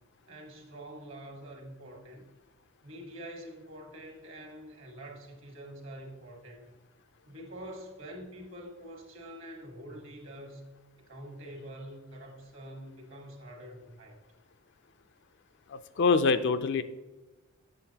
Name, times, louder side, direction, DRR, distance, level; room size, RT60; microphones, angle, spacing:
voice 1, 0.3-2.2 2.8-6.7 7.3-10.7 11.0-14.2, right 1 dB, 55° right, 2 dB, 1.4 m, -46 dB
voice 2, 15.7-16.8, left 4 dB, 50° left, 10 dB, 0.4 m, -25 dB
7.8 x 6.6 x 2.8 m, 1.1 s
head